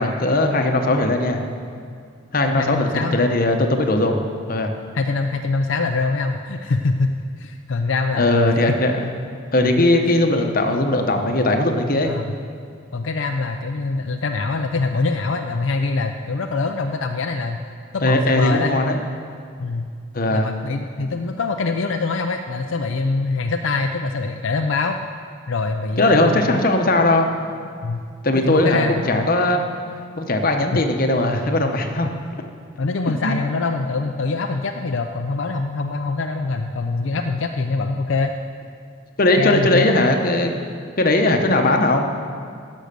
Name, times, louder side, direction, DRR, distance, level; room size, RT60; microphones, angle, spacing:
voice 1, 0.0-1.4 2.3-4.2 4.5-4.7 8.2-9.1 9.5-12.1 18.0-19.0 20.1-20.5 26.0-27.3 28.2-29.6 30.2-32.1 33.1-33.4 39.2-40.5 41.0-42.1, left 1 dB, 45° left, 4 dB, 1.0 m, -19 dB
voice 2, 2.4-3.2 4.9-8.8 12.1-12.3 12.9-17.6 17.9-18.7 19.6-19.9 20.3-25.0 25.5-26.6 27.8-28.0 28.4-29.3 30.7-30.8 32.8-38.3 39.4-40.0, left 3 dB, 70° left, 4 dB, 0.5 m, -24 dB
17.0 x 6.4 x 6.8 m, 2.2 s
head